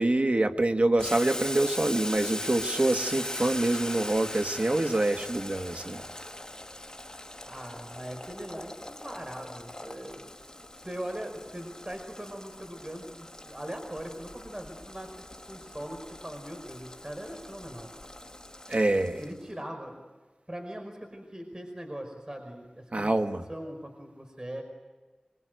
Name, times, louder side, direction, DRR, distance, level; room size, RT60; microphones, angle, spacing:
voice 1, 0.0-6.0 18.7-19.2 22.9-23.4, right 2 dB, 65° right, 6 dB, 1.7 m, -26 dB
Boiling, 1.0-19.4, left 1 dB, 30° left, 1.9 m, -40 dB
voice 2, 7.4-17.9 18.2-18.3 19.1-20.0 20.5-23.1 23.5-24.6, right 1 dB, 30° right, 4 dB, 5.2 m, -41 dB
25.0 x 24.0 x 9.3 m, 1.3 s
wide cardioid pair, 45°, 2 cm